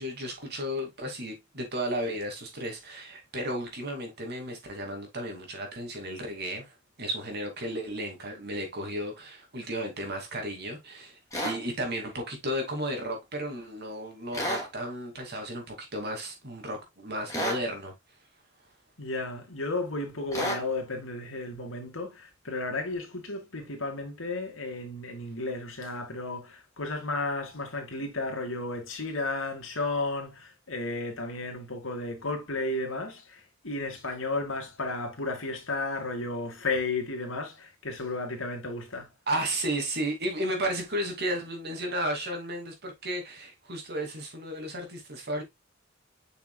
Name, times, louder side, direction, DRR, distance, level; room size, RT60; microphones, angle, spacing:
voice 1, 0.0-17.9 39.3-45.4, right 1 dB, 55° right, 2.6 m, -34 dB
sound 1, 11.3-11.6 14.3-14.7 17.3-17.6 20.3-20.6, equal, 15° left, 2.5 m, -30 dB
voice 2, 19.0-39.1, left 2 dB, 80° left, 2.4 m, -33 dB
7.3 x 6.0 x 2.4 m
head